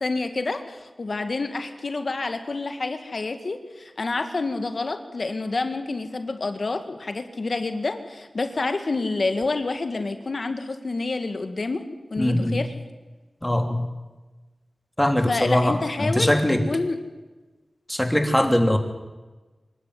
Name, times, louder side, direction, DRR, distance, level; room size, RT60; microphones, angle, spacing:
voice 1, 0.0-11.8 12.1-12.7 15.3-16.4 16.7-17.0, left 3 dB, 60° left, 8 dB, 1.9 m, -28 dB
voice 2, 12.2-12.6 13.4-13.9 15.0-16.6 17.9-18.8, left 1 dB, 10° left, 6 dB, 2.9 m, -21 dB
25.0 x 12.5 x 9.6 m, 1.2 s
wide cardioid pair, 60°, 0 cm